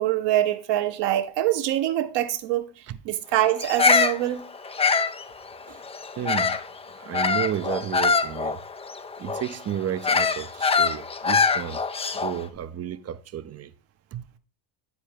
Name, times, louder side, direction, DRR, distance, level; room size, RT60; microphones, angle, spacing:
voice 1, 0.0-2.6 3.0-4.5, right 13 dB, 60° right, 1.1 m, -24 dB
Bird vocalization bird call bird song, 3.6-6.7 7.1-12.4, left 5 dB, 15° left, 0.4 m, -24 dB
voice 2, 6.2-6.6 6.9-8.6 9.2-11.8 12.1-13.7 14.1-14.2, right 10 dB, 35° right, 0.6 m, -32 dB
9.4 x 4.3 x 4.9 m
supercardioid pair, 80°, 47 cm